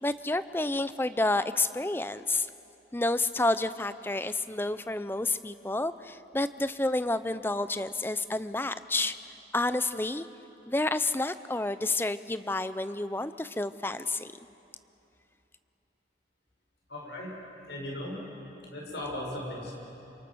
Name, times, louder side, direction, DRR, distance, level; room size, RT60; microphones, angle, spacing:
voice 1, 0.0-2.5 2.9-9.2 9.5-10.3 10.7-14.3, left 2 dB, 10° left, 13 dB, 0.5 m, -29 dB
voice 2, 16.9-17.4 17.7-18.3 18.7-19.7, left 1 dB, 70° left, -2 dB, 7.2 m, -37 dB
28.0 x 27.5 x 6.3 m, 2.8 s
head